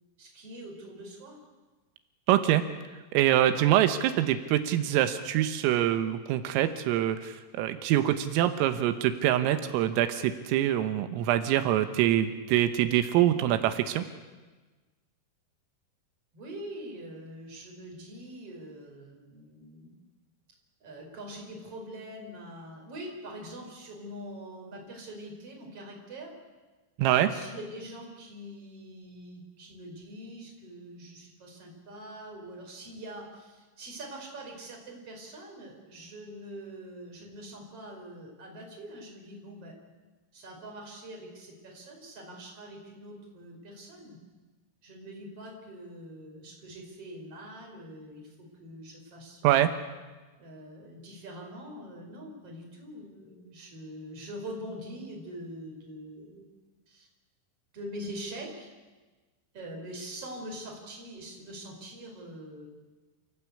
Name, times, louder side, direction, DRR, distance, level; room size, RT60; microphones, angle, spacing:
voice 1, 0.2-1.4 16.3-19.9 20.8-26.3 27.1-39.7 40.3-44.2 44.8-49.6 50.4-56.5 56.9-57.1 57.7-58.7 59.5-62.7, right 1 dB, 30° right, 0 dB, 5.6 m, -44 dB
voice 2, 2.3-2.6 3.1-14.0 27.0-27.3 49.4-49.7, right 12 dB, 90° right, 9 dB, 3.7 m, -25 dB
28.5 x 15.5 x 8.5 m, 1.3 s
omnidirectional pair, 5.8 m